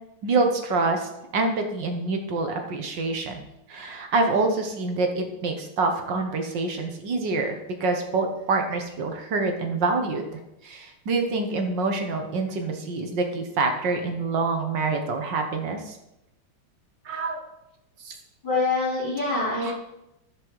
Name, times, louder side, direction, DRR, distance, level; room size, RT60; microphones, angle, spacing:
voice 1, 0.2-16.0 17.1-17.4 18.0-18.2 19.6-19.7, right 3 dB, 65° right, 4 dB, 1.8 m, -26 dB
voice 2, 18.4-19.8, left 3 dB, 25° left, -9 dB, 3.8 m, -25 dB
14.5 x 5.2 x 4.7 m, 0.88 s
omnidirectional pair, 2.2 m